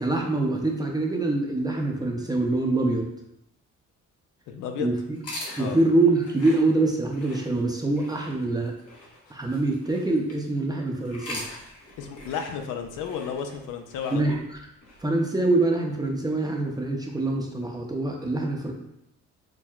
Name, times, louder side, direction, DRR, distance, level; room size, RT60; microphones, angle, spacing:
voice 1, 0.0-3.1 4.8-5.2 5.6-8.7 9.3-11.4 14.1-14.4 15.0-18.7, right 2 dB, 15° right, 0 dB, 0.6 m, -25 dB
voice 2, 4.5-4.9 5.6-5.8 12.0-14.4, left 7 dB, 85° left, 5 dB, 0.5 m, -33 dB
sound 1, 5.1-10.5 11.0-15.0, left 1 dB, 50° left, 1.1 m, -42 dB
6.0 x 2.1 x 2.3 m, 0.79 s
cardioid pair, 90°, 30 cm